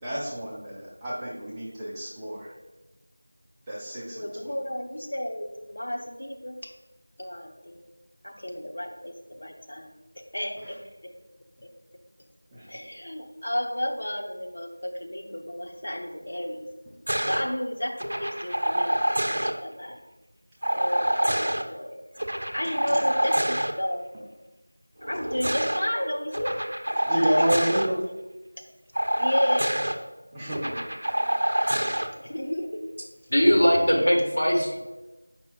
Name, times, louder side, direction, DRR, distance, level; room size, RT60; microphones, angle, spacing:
voice 1, 0.0-2.5 3.7-4.6 10.6-10.7 12.5-12.7 22.9-23.0 24.1-24.2 27.0-27.9 30.3-30.9, equal, 5° right, -9 dB, 0.6 m, -29 dB
voice 2, 4.1-6.7 7.2-7.9 8.2-9.9 10.3-11.1 11.6-11.7 12.7-16.7 17.2-19.0 19.3-20.0 20.7-22.0 22.5-24.1 25.0-26.6 27.4-27.5 28.6-28.7 29.1-29.8 32.1-32.8 33.9-34.2 34.6-34.7, equal, 50° left, 2 dB, 0.8 m, -32 dB
sound 1, 17.1-17.4 18.0-19.5 20.6-21.6 22.2-23.7 25.0-25.8 26.3-27.9 28.9-29.9 30.5-32.1 33.4-33.7, equal, 55° right, 0.6 m, -26 dB
voice 3, 33.3-34.8, equal, 65° left, -2 dB, 1.7 m, -20 dB
7.8 x 5.4 x 2.4 m, 1.1 s
figure-of-eight pair, 175°, 0 cm